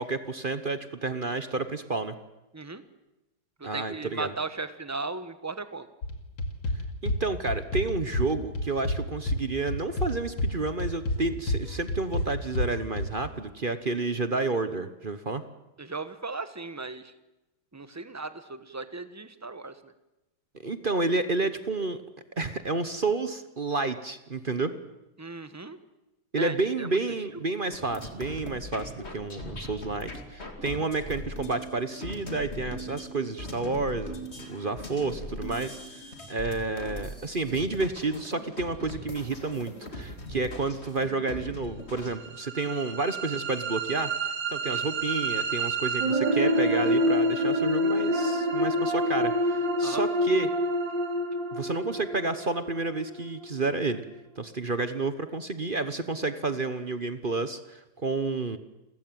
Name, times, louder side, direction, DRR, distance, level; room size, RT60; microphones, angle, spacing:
voice 1, 0.0-2.1 3.6-4.3 7.0-15.4 20.6-22.0 22.4-24.7 26.3-44.1 44.5-50.5 51.5-54.0 54.4-58.6, right 3 dB, 35° right, 11 dB, 1.0 m, -30 dB
voice 2, 3.7-5.9 15.8-17.1 17.7-19.8 25.2-25.8 26.4-27.1 42.7-42.8 44.7-44.8 49.8-50.0, right 3 dB, 10° right, 12 dB, 0.9 m, -36 dB
sound 1, 6.0-13.3, left 1 dB, 75° left, 3.1 m, -28 dB
sound 2, 27.7-42.1, equal, 35° left, 3.0 m, -40 dB
sound 3, 42.2-54.2, equal, 65° right, 3.8 m, -27 dB
29.0 x 15.0 x 9.3 m, 0.98 s
omnidirectional pair, 2.1 m